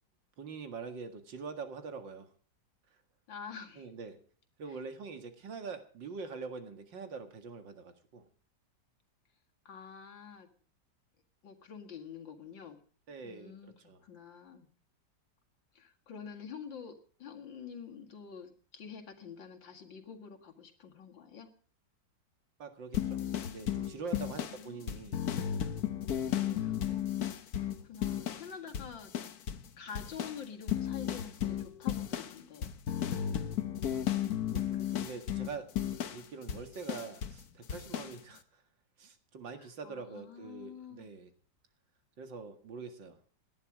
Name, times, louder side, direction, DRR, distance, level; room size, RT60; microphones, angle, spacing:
voice 1, 0.4-2.3 3.8-4.2 4.6-8.3 13.1-14.0 22.6-23.2 23.5-25.2 26.3-27.0 33.9-35.7 36.1-38.6 39.0-41.3 42.2-43.2, right 4 dB, 80° right, 8 dB, 2.6 m, -44 dB
voice 2, 3.3-3.9 4.7-4.8 9.7-10.5 11.4-12.8 13.2-13.7 14.0-14.7 15.7-21.5 24.2-25.1 26.1-29.1 29.8-32.7 34.7-35.0 39.6-41.1, left 7 dB, 90° left, 4 dB, 2.7 m, -48 dB
sound 1, 22.9-28.5 28.7-29.7 30.0-37.4 37.7-38.2, left 10 dB, 60° left, 1.4 m, -34 dB
18.0 x 11.0 x 4.9 m, 0.44 s
omnidirectional pair, 2.0 m